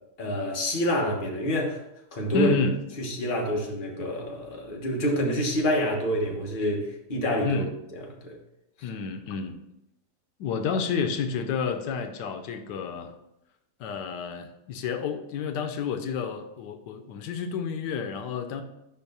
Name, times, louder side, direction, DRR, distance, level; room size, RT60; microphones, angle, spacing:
voice 1, 0.2-1.8 2.1-2.5 3.0-7.6 7.9-8.4 8.8-8.9, equal, 35° left, 0 dB, 1.2 m, -27 dB
voice 2, 2.3-2.7 7.4-7.7 8.8-9.6 10.4-13.2 13.8-18.6, left 5 dB, 85° left, 7 dB, 1.3 m, -30 dB
5.3 x 4.5 x 5.3 m, 0.86 s
omnidirectional pair, 1.8 m